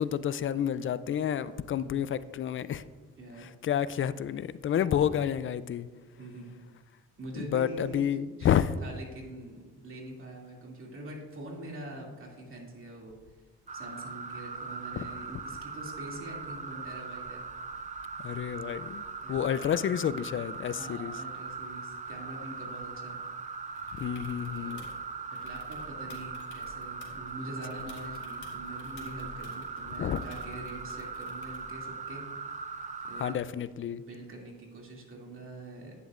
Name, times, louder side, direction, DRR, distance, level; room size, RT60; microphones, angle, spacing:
voice 1, 0.0-2.8 3.4-5.9 7.3-8.7 15.0-15.1 18.2-19.0 19.3-21.1 24.0-24.8 30.0-30.2 33.2-34.0, left 9 dB, 45° left, 0.4 m, -30 dB
voice 2, 1.8-2.1 3.2-3.5 6.2-6.5 7.2-8.1 8.4-13.4 13.7-17.4 19.2-19.5 20.7-23.2 24.5-24.9 25.3-32.6 33.0-33.4 34.1-35.9, right 1 dB, 45° right, 2.6 m, -44 dB
sound 1, 13.7-33.3, right 4 dB, 25° right, 0.6 m, -40 dB
sound 2, 23.8-25.0 25.4-27.3 27.7-31.7 33.6-33.7, left 2 dB, 90° left, 2.0 m, -52 dB
11.0 x 9.1 x 2.5 m
cardioid pair, 90°, 30 cm